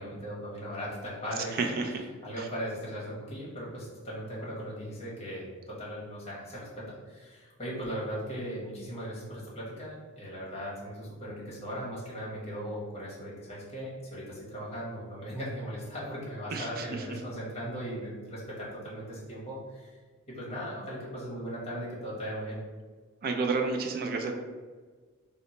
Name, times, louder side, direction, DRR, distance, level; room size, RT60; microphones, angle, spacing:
voice 1, 0.0-1.6 2.2-20.0 20.3-22.6, equal, 30° left, -6 dB, 1.0 m, -38 dB
voice 2, 1.5-1.9 2.4-2.5 16.5-16.8 23.2-24.3, right 4 dB, 45° right, 4 dB, 0.4 m, -30 dB
2.9 x 2.1 x 4.0 m, 1.4 s
head